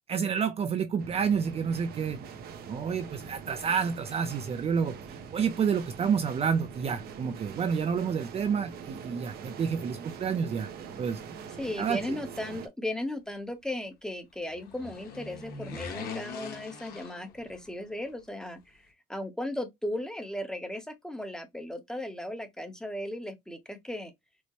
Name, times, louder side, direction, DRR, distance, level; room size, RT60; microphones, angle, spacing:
voice 1, 0.1-2.2 2.7-5.0 5.3-10.7 11.0-11.2 11.8-12.2, right 6 dB, 35° right, 0.5 m, -29 dB
sound 1, 1.0-12.7, right 6 dB, 65° right, 0.8 m, -44 dB
voice 2, 11.6-18.8 19.1-24.1, left 1 dB, 5° left, 0.8 m, -36 dB
sound 2, 14.4-17.8 18.1-18.2, left 4 dB, 65° left, 1.3 m, -42 dB
4.6 x 2.1 x 2.9 m
cardioid pair, 110°, 17 cm